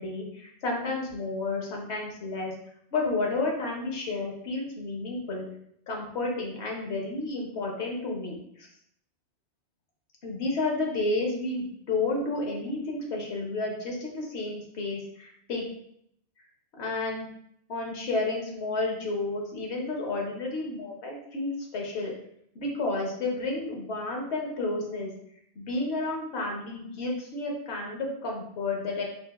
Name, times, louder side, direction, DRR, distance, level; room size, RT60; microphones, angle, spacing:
voice 1, 0.0-2.5 2.9-5.4 5.9-8.7 10.2-15.7 16.8-17.3 17.7-22.1 22.5-25.1 25.6-29.0, left 2 dB, 85° left, 0 dB, 1.0 m, -31 dB
3.7 x 2.3 x 2.2 m, 0.71 s
omnidirectional pair, 1.1 m